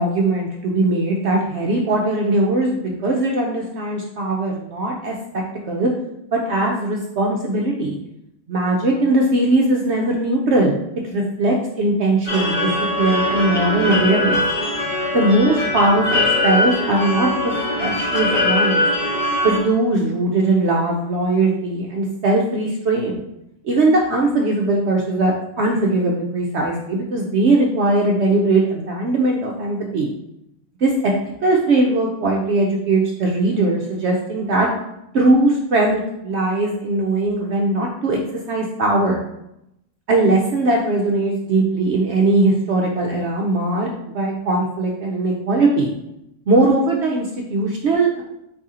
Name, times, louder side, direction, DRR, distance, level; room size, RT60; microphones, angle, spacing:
voice 1, 0.0-5.1 5.7-5.9 6.3-8.0 8.5-10.8 11.0-12.7 13.0-14.4 15.1-18.8 19.4-23.2 23.6-30.1 30.8-30.9 31.4-34.7 35.1-38.2 38.5-39.2 40.1-45.9 46.5-48.2, right 2 dB, 65° right, -1 dB, 0.7 m, -19 dB
sound 1, 12.3-19.6, left 1 dB, 40° left, 0.9 m, -21 dB
4.6 x 2.8 x 3.6 m, 0.82 s
omnidirectional pair, 1.6 m